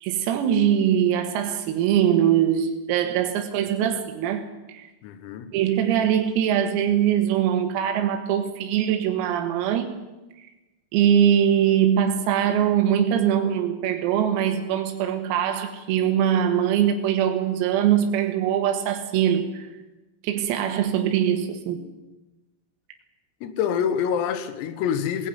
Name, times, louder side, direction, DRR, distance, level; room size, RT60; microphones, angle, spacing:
voice 1, 0.0-4.9 5.5-10.0 10.9-19.7 20.2-21.8, right 9 dB, 90° right, 4.2 m, -22 dB
voice 2, 5.0-5.5 23.4-25.3, left 8 dB, 85° left, 4.2 m, -26 dB
19.5 x 16.5 x 9.4 m
omnidirectional pair, 6.0 m